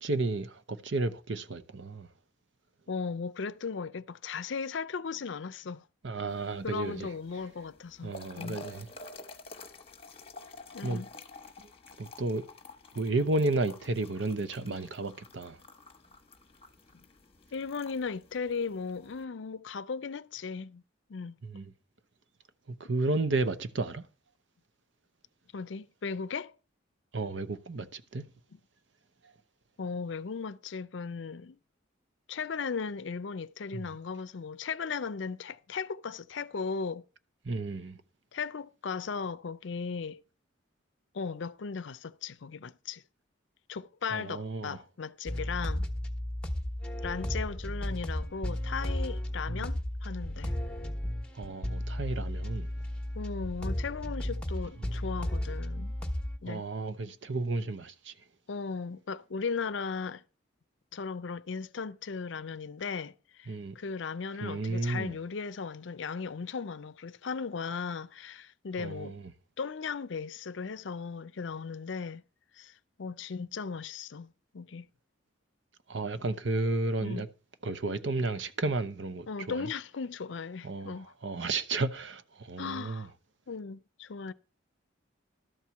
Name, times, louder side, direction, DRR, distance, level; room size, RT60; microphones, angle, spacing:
voice 1, 0.0-2.1 6.0-7.1 8.0-8.9 10.8-11.0 11.6-11.7 12.0-12.4 12.9-15.6 21.4-21.7 22.8-24.1 27.1-28.3 33.7-33.9 37.4-38.0 44.1-44.8 49.5-49.7 51.3-52.7 56.5-58.1 63.5-63.8 64.4-65.2 68.8-69.2 75.9-77.3 77.6-79.7 80.6-83.1, right 2 dB, 65° right, 0.8 m, -32 dB
voice 2, 2.9-5.8 6.6-8.6 10.7-11.1 16.9-17.0 17.5-20.8 21.1-21.4 25.5-26.5 28.5-28.6 29.8-31.6 32.3-37.0 38.3-40.2 41.1-43.0 43.7-45.9 47.0-50.5 53.1-56.0 56.4-56.6 58.5-60.2 60.9-69.1 69.6-72.2 72.6-72.7 73.0-74.3 74.5-74.9 77.0-77.2 79.3-81.1 82.6-83.1 83.5-84.3, left 5 dB, 70° left, 0.5 m, -37 dB
sound 1, 6.3-19.2, left 3 dB, 30° left, 1.2 m, -50 dB
sound 2, 45.2-56.4, left 1 dB, 5° left, 1.2 m, -34 dB
12.5 x 4.5 x 7.0 m
head